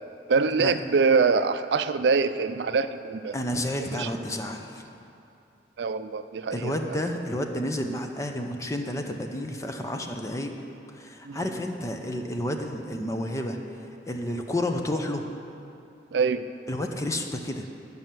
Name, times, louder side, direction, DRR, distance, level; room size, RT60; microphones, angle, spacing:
voice 1, 0.3-3.4 3.8-4.1 5.8-7.0 11.2-11.5 16.1-16.5, right 5 dB, 70° right, 11 dB, 0.4 m, -24 dB
voice 2, 3.3-4.9 6.5-10.5 10.9-13.6 14.1-15.3 16.7-17.7, left 1 dB, 15° left, 4 dB, 0.6 m, -30 dB
11.0 x 5.5 x 7.5 m, 2.7 s
head